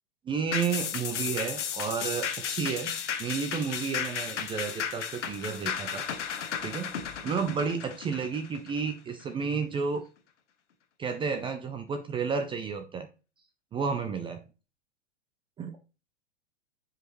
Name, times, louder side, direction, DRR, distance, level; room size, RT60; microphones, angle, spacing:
voice 1, 0.3-2.9 3.2-6.1 6.6-6.9 7.2-10.0 11.0-13.1 13.7-14.4 15.6-15.7, right 5 dB, 15° right, 7 dB, 0.5 m, -31 dB
sound 1, 0.5-9.2 9.6-9.7, left 8 dB, 85° left, 1.1 m, -34 dB
7.4 x 5.0 x 3.1 m, 0.32 s
hypercardioid pair, 125°, 35 cm